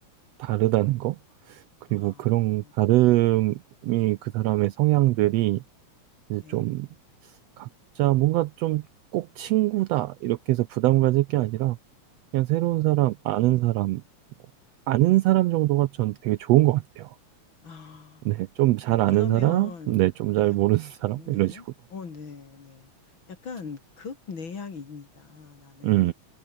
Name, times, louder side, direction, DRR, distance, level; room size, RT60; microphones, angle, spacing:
voice 1, 0.4-1.2 1.5-1.6 1.9-5.6 6.3-6.9 7.6-7.7 8.0-8.8 9.1-11.8 12.3-14.0 14.9-17.1 18.2-21.6 25.8-26.1, right 17 dB, 80° right, 1.5 m, -23 dB
voice 2, 1.9-2.7 6.4-6.7 17.6-18.4 19.1-20.0 21.2-21.7 21.9-22.9 23.3-26.1, left 5 dB, 40° left, 3.3 m, -41 dB
omnidirectional pair, 3.4 m